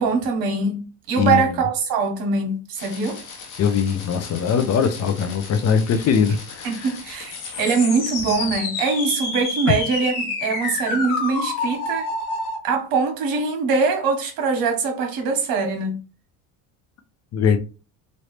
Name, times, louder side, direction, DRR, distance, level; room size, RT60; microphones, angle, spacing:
voice 1, 0.0-3.2 6.6-12.1 12.6-16.0, right 4 dB, 70° right, 1.4 m, -23 dB
voice 2, 1.2-1.6 3.6-6.9 9.7-9.8 17.3-17.6, left 7 dB, 45° left, 0.6 m, -21 dB
sound 1, 2.8-12.6, left 3 dB, 60° left, 1.1 m, -30 dB
3.1 x 2.6 x 3.2 m
cardioid pair, 110°, 37 cm